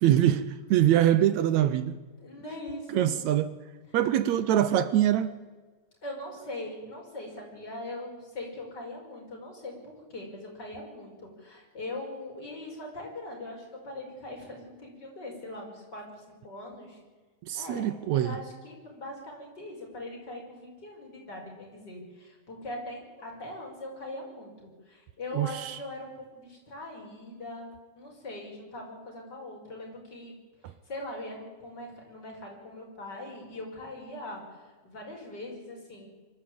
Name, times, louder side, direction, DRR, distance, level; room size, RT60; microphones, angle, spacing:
voice 1, 0.0-2.0 2.9-3.5 3.9-5.3 17.5-18.4 25.3-25.8, right 11 dB, 75° right, 2.0 m, -24 dB
voice 2, 2.2-3.1 6.0-17.0 17.5-30.3 30.6-34.4 34.8-36.1, left 1 dB, 35° left, 6.0 m, -41 dB
24.5 x 13.5 x 8.7 m
omnidirectional pair, 3.3 m